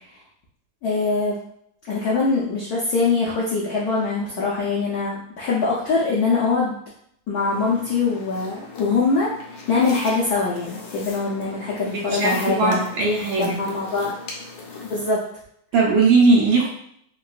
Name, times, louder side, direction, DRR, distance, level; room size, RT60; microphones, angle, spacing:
voice 1, 0.8-1.4 1.9-6.8 7.3-9.3 9.7-12.8 13.4-14.1 14.9-15.2, left 4 dB, 85° left, -6 dB, 0.8 m, -23 dB
sound 1, 7.4-15.1, left 3 dB, 70° left, 1.1 m, -40 dB
voice 2, 11.9-13.6 15.7-16.7, right 3 dB, 70° right, -3 dB, 1.3 m, -18 dB
3.6 x 2.2 x 2.3 m, 0.68 s
omnidirectional pair, 2.4 m